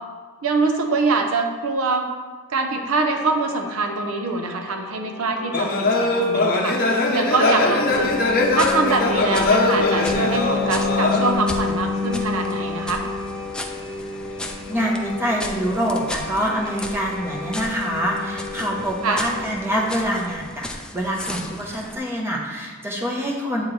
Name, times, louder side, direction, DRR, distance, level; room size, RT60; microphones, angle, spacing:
voice 1, 0.4-2.1 2.5-8.1 8.5-13.0 19.0-19.2, right 3 dB, 85° right, 4 dB, 0.7 m, -24 dB
sound 1, 3.0-20.3, left 4 dB, 20° left, 1.1 m, -30 dB
sound 2, 5.5-11.3, left 2 dB, 45° left, 0.7 m, -21 dB
sound 3, 7.9-22.0, left 1 dB, 5° left, 0.4 m, -36 dB
voice 2, 14.7-20.7 20.9-23.7, equal, 10° right, -2 dB, 0.9 m, -25 dB
8.6 x 4.4 x 3.2 m, 1.4 s
head